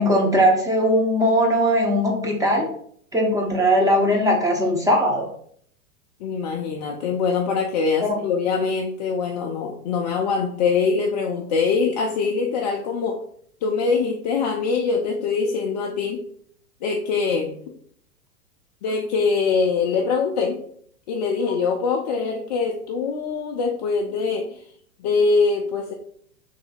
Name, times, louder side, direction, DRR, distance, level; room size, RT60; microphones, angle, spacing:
voice 1, 0.0-2.7 3.1-5.3 8.0-8.2, equal, 10° right, 0 dB, 0.6 m, -19 dB
voice 2, 6.2-13.2 13.6-16.2 16.8-17.6 18.8-20.6 21.1-24.6 25.0-25.9, left 4 dB, 30° left, 1 dB, 0.4 m, -23 dB
3.2 x 2.7 x 4.0 m, 0.62 s
figure-of-eight pair, 100°, 45 cm